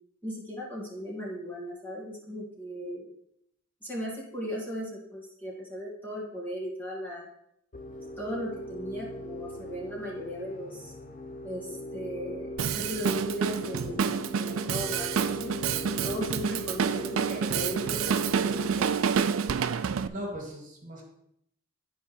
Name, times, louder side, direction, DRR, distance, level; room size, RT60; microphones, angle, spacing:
voice 1, 0.2-3.1 3.8-7.3 8.2-10.9 11.4-15.6 16.0-18.9, equal, 10° left, -5 dB, 2.0 m, -37 dB
sound 1, 7.7-19.7, left 1 dB, 40° left, 0.8 m, -41 dB
Drum kit, 12.6-20.1, right 6 dB, 85° right, 0.4 m, -28 dB
voice 2, 20.1-21.0, equal, 40° right, -1 dB, 2.0 m, -38 dB
11.0 x 4.9 x 4.3 m, 0.75 s
head